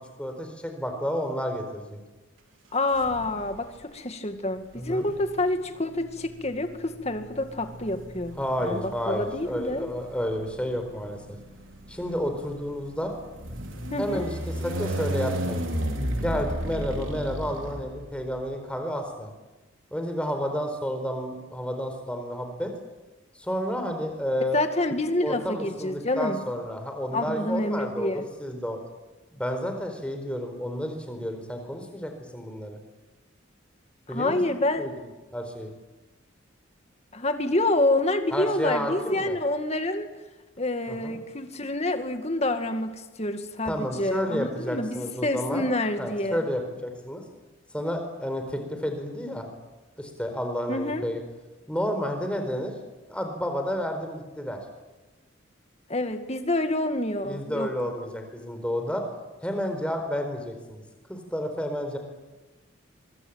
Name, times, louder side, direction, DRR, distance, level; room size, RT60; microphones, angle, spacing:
voice 1, 0.2-2.0 4.7-5.1 8.4-11.4 11.9-13.1 14.0-14.3 14.6-15.6 16.2-19.3 19.9-22.7 23.4-24.6 25.2-28.8 29.3-32.8 34.1-34.4 34.8-34.9 35.3-35.7 38.3-39.4 40.9-41.2 43.6-45.7 46.0-47.2 47.7-49.5 50.0-51.2 51.7-52.7 53.1-54.6 57.2-59.0 59.4-60.8 61.1-62.0, equal, 5° left, 5 dB, 4.5 m, -31 dB
voice 2, 2.7-9.9 13.9-14.2 24.5-26.4 27.1-28.2 34.1-35.0 37.1-40.1 40.6-46.4 50.7-51.0 55.9-57.7, left 2 dB, 30° left, 7 dB, 2.2 m, -27 dB
sound 1, 2.9-3.7 4.7-18.4, right 1 dB, 75° right, 3.9 m, -34 dB
25.5 x 24.0 x 8.9 m, 1.1 s
head